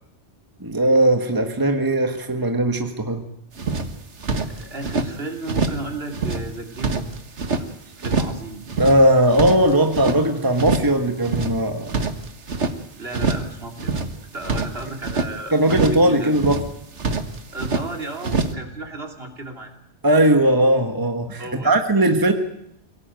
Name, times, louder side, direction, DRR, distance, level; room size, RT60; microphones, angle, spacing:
voice 1, 0.6-3.2 8.8-11.9 15.5-16.6 20.0-22.3, right 1 dB, 20° right, 6 dB, 1.6 m, -18 dB
sound 1, 3.6-5.1 5.5-5.9 6.1-7.7 8.0-8.4 8.7-10.2 10.6-11.0 11.2-12.8 13.1-13.5 13.8-15.3 15.7-16.1 16.3-17.9 18.2-18.5, right 4 dB, 85° right, 1.8 m, -25 dB
voice 2, 4.3-7.1 7.5-8.6 13.0-14.0 14.3-16.3 17.5-19.7 21.4-21.8, right 2 dB, 60° right, 3 dB, 3.4 m, -34 dB
23.0 x 18.0 x 9.2 m, 0.76 s
omnidirectional pair, 1.2 m